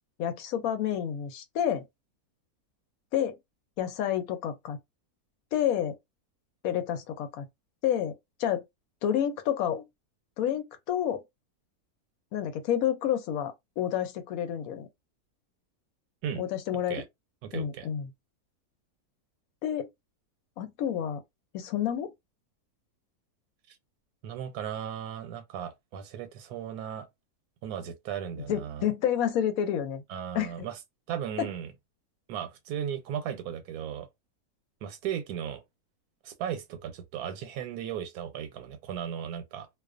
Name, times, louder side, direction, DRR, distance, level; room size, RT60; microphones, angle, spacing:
voice 1, 0.2-1.8 3.1-3.3 3.8-4.8 5.5-6.0 6.6-7.5 7.8-8.6 9.0-9.9 10.4-11.2 12.3-14.9 16.4-17.0 17.5-18.1 19.6-19.9 20.6-21.2 21.5-22.1 28.5-30.0 30.3-30.7 31.4-31.5, left 10 dB, 75° left, 1.0 m, -29 dB
voice 2, 17.4-17.9 23.7-23.8 24.2-27.1 27.6-28.9 30.1-30.8 31.1-31.7 32.3-34.1 34.8-35.6 36.2-39.7, right 9 dB, 85° right, 1.1 m, -36 dB
2.4 x 2.2 x 2.4 m
omnidirectional pair, 1.6 m